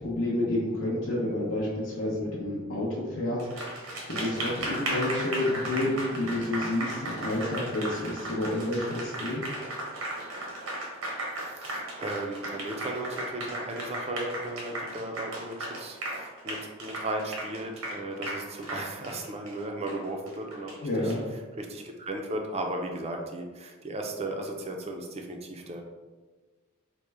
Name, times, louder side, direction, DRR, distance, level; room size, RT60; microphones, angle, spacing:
voice 1, 0.0-9.4 20.8-21.2, left 1 dB, 80° left, -6 dB, 0.7 m, -30 dB
Applause, 3.4-21.1, right 1 dB, 80° right, 0.9 m, -35 dB
voice 2, 11.4-21.1 21.6-25.8, right 1 dB, 30° right, 2 dB, 0.4 m, -36 dB
4.4 x 2.1 x 3.3 m, 1.3 s
head